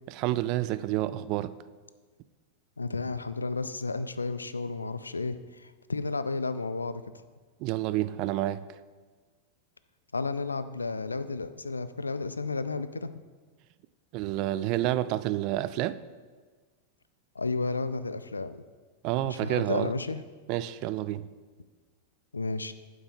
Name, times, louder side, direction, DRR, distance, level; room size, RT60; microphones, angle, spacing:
voice 1, 0.2-1.5 7.6-8.8 14.1-16.0 19.0-19.9 20.5-21.3, right 15 dB, 40° right, 15 dB, 0.3 m, -29 dB
voice 2, 2.8-7.0 10.1-13.1 17.4-18.6 19.2-20.2 22.3-22.7, left 3 dB, 80° left, 13 dB, 0.4 m, -32 dB
8.8 x 7.1 x 3.5 m, 1.4 s
figure-of-eight pair, 90°, 0 cm